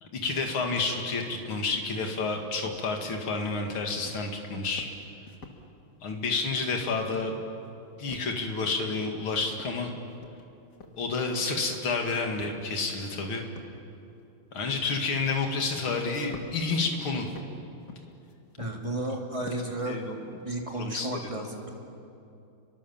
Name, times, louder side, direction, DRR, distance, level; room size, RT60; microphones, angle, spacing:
voice 1, 0.0-4.9 6.0-7.4 8.0-9.9 11.0-13.4 14.5-17.3 19.9-20.2 20.7-21.1, left 4 dB, 70° left, 3 dB, 3.2 m, -30 dB
sound 1, 1.3-1.6 1.9-2.2 2.6-3.0 3.5-3.8 4.0-4.4 4.6-5.6 6.0-6.3 6.6-7.0 7.3-8.7 9.0-9.3 9.6-10.4 10.7-11.7 12.4-12.6 13.1-13.2 13.6-13.8 14.6-14.9 15.4-15.6 15.8-19.0 19.4-19.8 20.2-21.1, left 4 dB, 50° left, 2.5 m, -48 dB
voice 2, 18.6-20.0 20.4-21.7, right 1 dB, 15° right, 1 dB, 2.8 m, -33 dB
30.0 x 23.5 x 7.3 m, 2.7 s
omnidirectional pair, 2.4 m